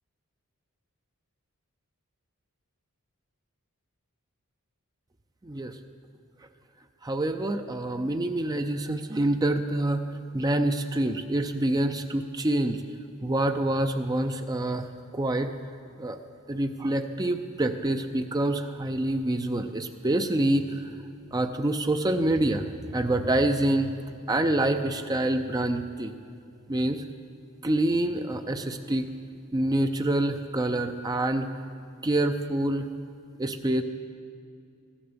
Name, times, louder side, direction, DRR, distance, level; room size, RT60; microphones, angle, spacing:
voice 1, 7.0-10.0 10.3-12.8 13.2-14.9 15.1-15.5 16.0-16.2 16.5-20.7 21.3-22.6 22.9-23.9 24.3-26.1 26.7-27.0 27.6-29.1 29.5-31.5 32.0-32.9 33.4-33.8, right 1 dB, 15° right, 6 dB, 0.5 m, -26 dB
14.0 x 10.0 x 6.8 m, 2.4 s
head